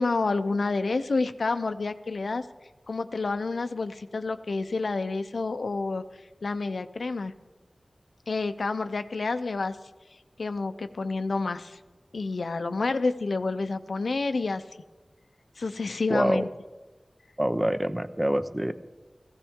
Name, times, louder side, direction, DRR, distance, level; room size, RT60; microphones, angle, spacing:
voice 1, 0.0-2.5 2.9-6.0 6.4-7.3 8.3-9.8 10.4-11.8 12.1-14.6 15.6-16.5, left 3 dB, 90° left, 9 dB, 0.5 m, -29 dB
voice 2, 16.1-16.4 17.4-18.7, right 1 dB, 20° right, 10 dB, 0.7 m, -26 dB
16.5 x 15.5 x 3.6 m, 1.2 s
wide cardioid pair, 55°, 0 cm